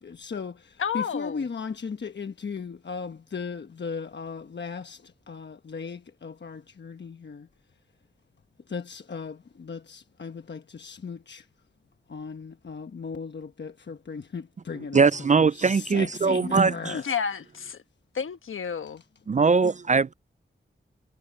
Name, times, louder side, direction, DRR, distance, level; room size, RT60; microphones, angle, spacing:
voice 1, 0.0-7.5 8.7-11.5 12.1-17.1 19.0-19.1, left 5 dB, 60° left, 1.1 m, -37 dB
voice 2, 0.8-1.4 16.9-17.8 18.1-19.0, left 7 dB, 90° left, 1.3 m, -31 dB
voice 3, 14.9-16.9 19.3-20.1, right 5 dB, 35° right, 0.4 m, -21 dB
cardioid pair, 60°, 20 cm